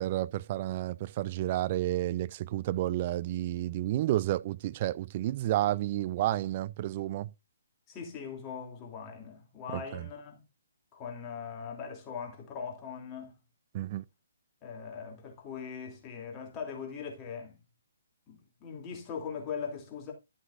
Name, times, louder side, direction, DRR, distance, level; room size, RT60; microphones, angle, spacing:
voice 1, 0.0-7.3 9.7-10.1 13.7-14.0, right 14 dB, 35° right, 0.4 m, -31 dB
voice 2, 7.9-10.4 10.9-13.4 14.6-17.6 18.3-20.1, left 6 dB, 25° left, 2.9 m, -40 dB
12.0 x 7.8 x 2.5 m
figure-of-eight pair, 135°, 0 cm